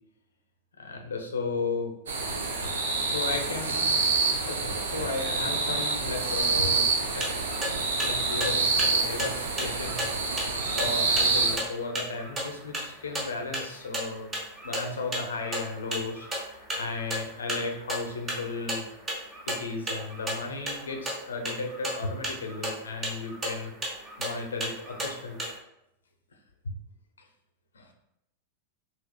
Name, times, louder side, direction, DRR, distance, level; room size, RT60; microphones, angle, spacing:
voice 1, 0.8-1.9 3.0-4.0 4.4-7.3 8.0-10.4 10.7-14.3 14.6-18.8 19.5-23.9 24.2-25.4 26.6-26.7 27.7-27.9, left 3 dB, 70° left, 3 dB, 0.6 m, -35 dB
sound 1, 2.1-11.6, right 4 dB, 65° right, 0.6 m, -27 dB
sound 2, 7.0-25.6, right 1 dB, 20° right, 0.9 m, -35 dB
5.0 x 3.1 x 2.3 m, 0.83 s
figure-of-eight pair, 90°, 0 cm